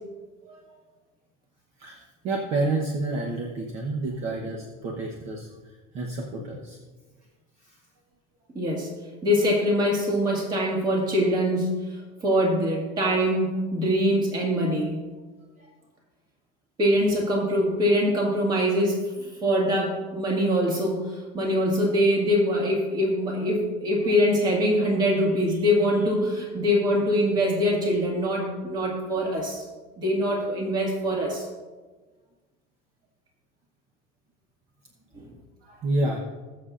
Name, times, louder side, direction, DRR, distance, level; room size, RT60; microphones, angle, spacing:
voice 1, 0.5-0.8 1.8-5.5 5.9-6.8 7.6-7.7 15.6-15.7 35.6-36.2, right 2 dB, 40° right, 1 dB, 1.0 m, -29 dB
voice 2, 8.6-8.9 9.2-11.8 12.2-15.0 16.8-19.0 19.4-29.6 30.0-31.5 35.1-35.2, equal, 25° right, -1 dB, 1.9 m, -23 dB
20.5 x 6.9 x 2.5 m, 1.3 s
cardioid pair, 175°, 19 cm